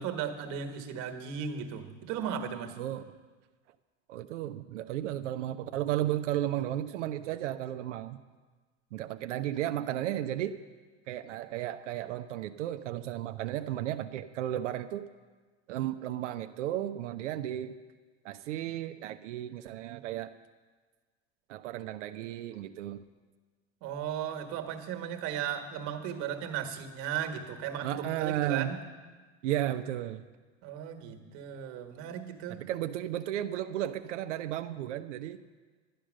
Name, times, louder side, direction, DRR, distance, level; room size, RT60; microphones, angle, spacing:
voice 1, 0.0-2.8 23.8-28.8 30.6-32.6, right 8 dB, 55° right, 6 dB, 1.5 m, -36 dB
voice 2, 2.8-3.1 4.1-8.2 8.9-10.6 11.1-15.0 15.7-17.8 18.2-20.3 21.5-23.0 27.8-28.7 29.4-30.2 32.6-35.4, right 12 dB, 85° right, 8 dB, 0.7 m, -34 dB
11.5 x 10.5 x 6.4 m, 1.4 s
supercardioid pair, 115°, 35 cm